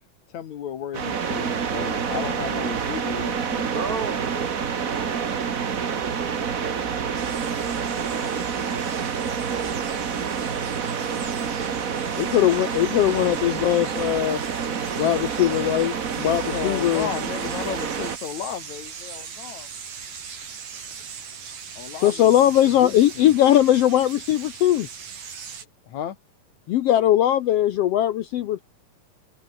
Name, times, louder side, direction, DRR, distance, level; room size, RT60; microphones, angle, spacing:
voice 1, 0.3-3.8 16.5-19.7 21.8-23.3 25.9-26.2, left 9 dB, 60° left, 2.7 m, -34 dB
sound 1, 0.9-18.2, right 6 dB, 55° right, 0.9 m, -28 dB
voice 2, 3.6-5.2 8.2-9.9 10.8-12.2 12.7-13.4, right 4 dB, 35° right, 1.5 m, -39 dB
sound 2, 7.2-25.7, right 6 dB, 75° right, 5.2 m, -40 dB
voice 3, 12.2-14.4 14.9-17.1 22.0-24.9 26.7-28.6, left 12 dB, 80° left, 1.3 m, -20 dB
omnidirectional pair, 3.8 m